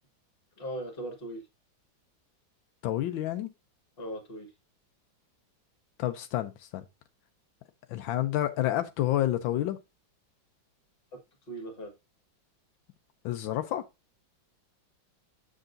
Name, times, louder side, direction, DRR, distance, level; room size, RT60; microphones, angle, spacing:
voice 1, 0.6-1.4 4.0-4.5 11.1-11.2 11.5-12.0, right 1 dB, 30° left, 1.6 m, -38 dB
voice 2, 2.8-3.5 6.0-6.8 7.9-9.8 13.2-13.8, left 13 dB, 85° left, 1.4 m, -29 dB
7.8 x 6.2 x 2.5 m
omnidirectional pair, 2.1 m